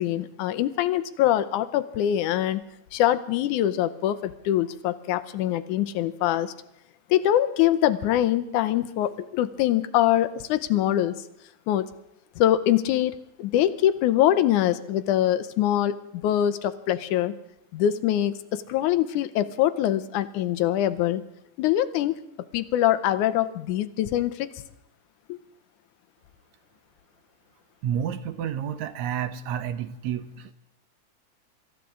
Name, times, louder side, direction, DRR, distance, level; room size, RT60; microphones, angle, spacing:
voice 1, 0.0-2.6 2.9-6.5 7.1-11.1 11.7-11.9 12.4-17.3 17.7-21.2 21.6-22.2 22.5-24.5 25.3-25.4, left 12 dB, 80° left, 13 dB, 2.2 m, -24 dB
voice 2, 27.8-30.5, right 9 dB, 70° right, 11 dB, 2.1 m, -30 dB
26.0 x 14.5 x 3.8 m, 0.78 s
omnidirectional pair, 3.6 m